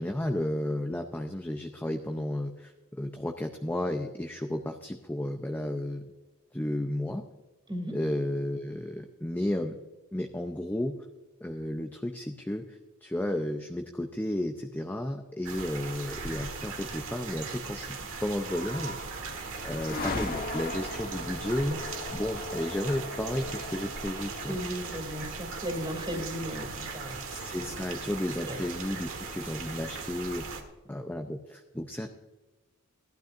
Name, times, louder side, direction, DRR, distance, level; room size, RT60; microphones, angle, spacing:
voice 1, 0.0-6.1 6.5-7.2 7.9-9.8 10.1-11.0 11.4-19.0 19.6-21.9 22.1-24.6 26.1-26.2 27.3-30.6 30.9-32.1, left 1 dB, 10° left, 4 dB, 0.6 m, -33 dB
sound 1, 15.5-30.6, right 4 dB, 65° right, 1.6 m, -39 dB
sound 2, 19.0-28.5, left 2 dB, 45° left, 1.3 m, -40 dB
voice 2, 24.5-27.2 28.4-28.6, equal, 20° right, 2 dB, 2.6 m, -35 dB
16.0 x 12.0 x 2.6 m, 1.2 s
head